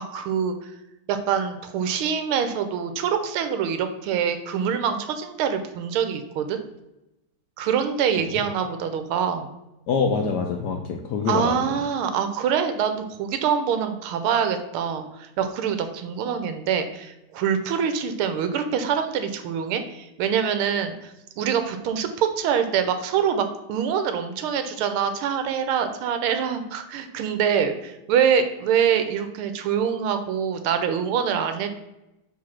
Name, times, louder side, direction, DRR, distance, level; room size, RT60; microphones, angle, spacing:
voice 1, 0.1-0.5 1.1-6.6 7.6-9.5 11.3-31.7, right 7 dB, 85° right, 8 dB, 1.5 m, -25 dB
voice 2, 9.9-11.8, left 5 dB, 70° left, 3 dB, 1.0 m, -25 dB
4.8 x 3.8 x 5.7 m, 0.92 s
omnidirectional pair, 2.4 m